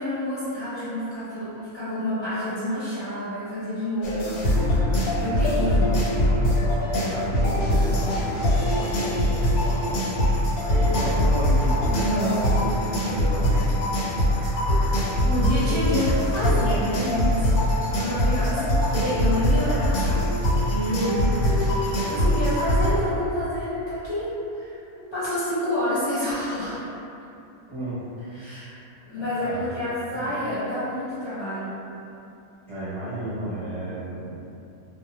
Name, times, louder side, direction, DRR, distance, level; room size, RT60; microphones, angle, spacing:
voice 1, 0.0-1.5 1.7-4.5 5.2-5.9 12.0-12.4 15.2-20.2 20.7-21.7 22.1-24.3 24.5-24.8 25.1-26.9 28.3-28.8 29.1-31.8, equal, 30° left, -14 dB, 0.6 m, -28 dB
sound 1, 4.0-22.9, left 1 dB, 85° left, 1.1 m, -23 dB
voice 2, 6.8-10.0 10.7-13.8 27.7-28.0 29.1-29.6 30.1-30.3 32.7-34.3, right 1 dB, 25° right, -15 dB, 0.7 m, -32 dB
2.3 x 2.1 x 2.8 m, 2.8 s
omnidirectional pair, 1.5 m